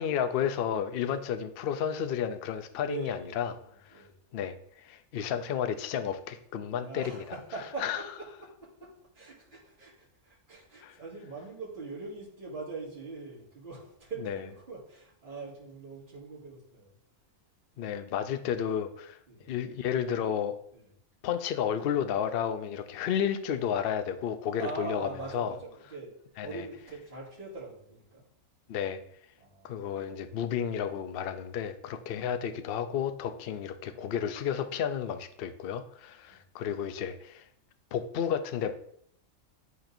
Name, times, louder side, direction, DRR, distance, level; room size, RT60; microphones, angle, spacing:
voice 1, 0.0-3.5 3.8-4.0 4.3-7.2 7.8-8.0 10.8-11.0 14.2-14.4 17.8-19.2 19.5-20.6 21.2-25.5 26.4-26.6 28.7-29.0 29.6-37.4 37.9-38.7, left 8 dB, 60° left, 8 dB, 0.7 m, -32 dB
voice 2, 1.0-1.3 2.8-4.1 6.7-8.3 8.8-16.9 19.3-19.5 20.7-20.9 24.6-26.1 26.4-28.2 29.4-29.7 31.9-32.1 33.4-33.5 36.3-36.4, right 3 dB, 35° right, -9 dB, 2.5 m, -42 dB
11.0 x 4.4 x 2.6 m, 0.68 s
omnidirectional pair, 1.4 m